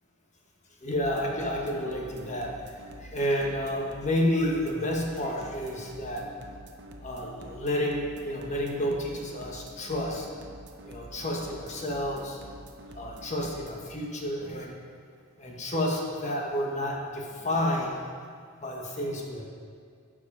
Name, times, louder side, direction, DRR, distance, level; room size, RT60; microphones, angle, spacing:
voice 1, 0.8-6.2 7.0-10.3 10.8-12.4 12.9-14.7 15.4-17.9 18.6-19.4, left 1 dB, 35° left, -1 dB, 1.2 m, -30 dB
sound 1, 0.9-13.8, right 1 dB, 55° right, 0.8 m, -47 dB
12.5 x 4.9 x 5.5 m, 2.2 s
head